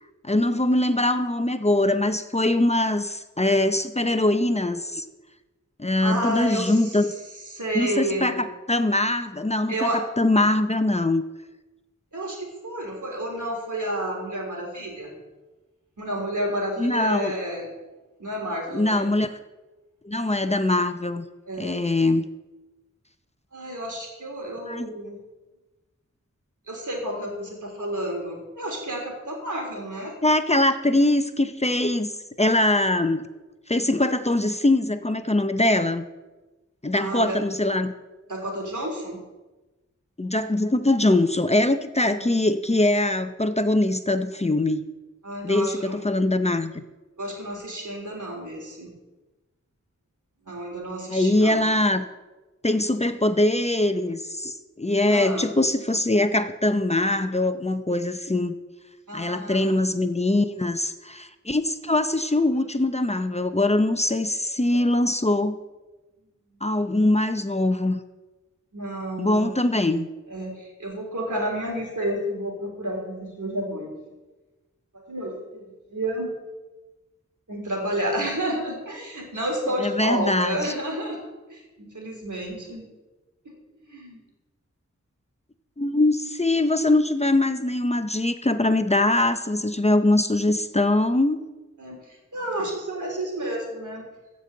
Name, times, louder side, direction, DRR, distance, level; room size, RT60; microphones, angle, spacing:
voice 1, 0.2-5.1 5.8-7.1 7.7-11.2 16.8-17.3 18.7-19.4 20.0-21.2 21.6-22.3 24.7-24.9 30.2-32.1 32.4-33.2 33.7-36.0 36.8-37.9 40.2-44.8 45.4-46.8 51.1-52.0 52.6-58.5 59.1-65.6 66.6-68.0 69.2-70.1 79.8-80.7 85.8-91.4, left 2 dB, 20° left, 9 dB, 0.6 m, -22 dB
voice 2, 6.0-6.9 7.5-8.4 9.7-10.0 12.1-15.1 16.0-17.7 18.2-19.0 21.5-21.9 23.5-25.2 26.7-30.1 37.0-37.4 38.3-39.2 42.1-42.4 45.2-45.9 47.2-48.9 50.5-51.6 55.1-55.5 59.1-60.0 66.5-66.6 68.7-69.5 70.3-73.9 75.1-75.6 75.9-76.3 77.5-82.8 83.4-83.6 83.8-84.2 91.8-92.0 92.3-94.0, right 1 dB, 80° right, 0 dB, 3.3 m, -30 dB
15.0 x 5.4 x 7.6 m, 1.1 s
wide cardioid pair, 65°, 30 cm